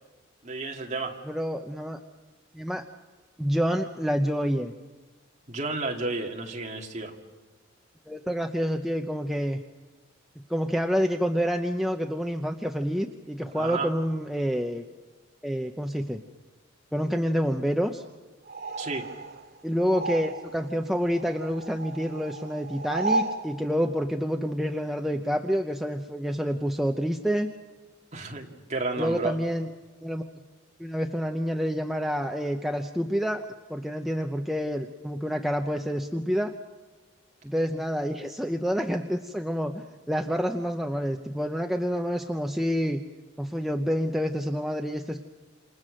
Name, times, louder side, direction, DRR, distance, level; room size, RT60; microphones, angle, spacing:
voice 1, 0.4-1.2 5.5-7.1 13.5-13.9 18.8-19.1 28.1-29.4, right 3 dB, 35° right, 1 dB, 2.3 m, -32 dB
voice 2, 1.3-2.0 2.5-2.8 3.4-4.7 8.1-9.6 10.5-14.8 15.4-16.2 16.9-18.0 19.6-27.5 29.0-29.7 30.0-30.2 30.8-33.4 33.7-36.5 37.4-43.0 43.4-45.2, equal, ahead, 3 dB, 0.7 m, -28 dB
sound 1, 18.5-20.7 21.0-23.4, right 3 dB, 55° right, 2.2 m, -33 dB
28.5 x 27.5 x 6.4 m, 1.3 s
head